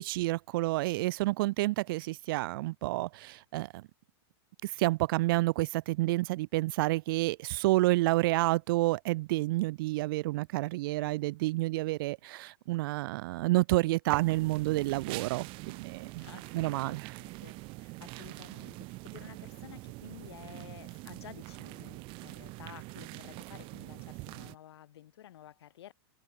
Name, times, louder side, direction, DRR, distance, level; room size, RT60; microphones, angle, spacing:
voice 1, 0.0-3.8 4.6-16.3 16.5-17.1, right 19 dB, 55° right, 0.5 m, -29 dB
sound 1, 14.1-24.6, right 25 dB, 40° right, 1.1 m, -44 dB
voice 2, 15.9-25.9, left 12 dB, 75° left, 4.6 m, -52 dB
hypercardioid pair, 135°, 14 cm